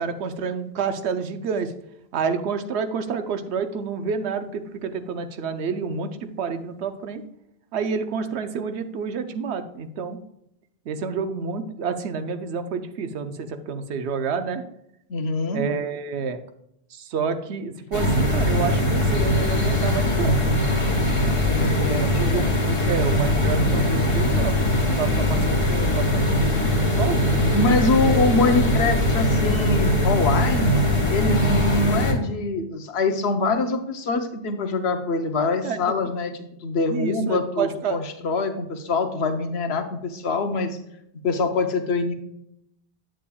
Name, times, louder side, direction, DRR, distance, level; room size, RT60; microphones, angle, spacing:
voice 1, 0.0-1.7 2.1-7.2 7.7-10.2 10.9-14.6 15.5-16.4 16.9-20.4 22.0-24.6 25.0-27.5 35.6-35.8 36.9-38.0, right 5 dB, 90° right, 9 dB, 0.9 m, -29 dB
voice 2, 15.1-15.6 21.4-22.5 27.5-30.8 31.1-36.3 36.6-40.8 41.2-42.1, left 3 dB, 75° left, 7 dB, 1.0 m, -24 dB
sound 1, 17.9-32.1, left 1 dB, 30° left, 1.1 m, -21 dB
8.3 x 7.6 x 2.3 m, 0.78 s
omnidirectional pair, 1.1 m